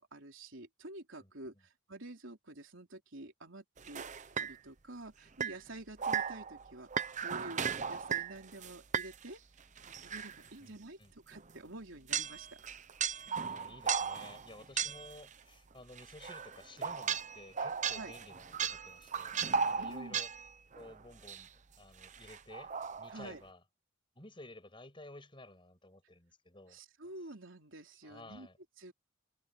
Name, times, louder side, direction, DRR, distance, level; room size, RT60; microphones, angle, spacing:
voice 1, 0.0-4.0 4.4-9.4 9.9-12.5 17.9-18.1 19.8-20.2 23.1-23.4 26.7-28.5 28.8-28.9, right 2 dB, 60° right, 4.1 m, -49 dB
sound 1, 3.8-4.6 5.4-5.6 6.0-9.3 9.8-10.5 11.3-11.4 12.1-15.3 16.0-21.0 21.3-21.5 22.0-23.3, right 6 dB, 35° right, 0.8 m, -36 dB
voice 2, 10.6-11.1 13.4-20.3 20.7-21.5 21.8-23.6 24.1-26.8 28.0-28.6, left 2 dB, 25° left, 6.8 m, -54 dB
head